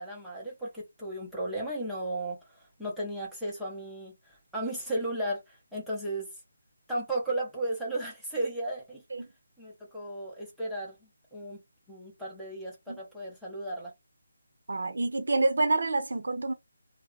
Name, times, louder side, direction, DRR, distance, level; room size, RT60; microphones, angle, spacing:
voice 1, 0.0-6.4 6.9-9.0 9.6-11.6 11.9-13.9, right 1 dB, ahead, 0.7 m, -35 dB
voice 2, 14.7-16.5, right 2 dB, 65° right, 0.6 m, -27 dB
2.8 x 2.0 x 2.3 m
hypercardioid pair, 175°, 0 cm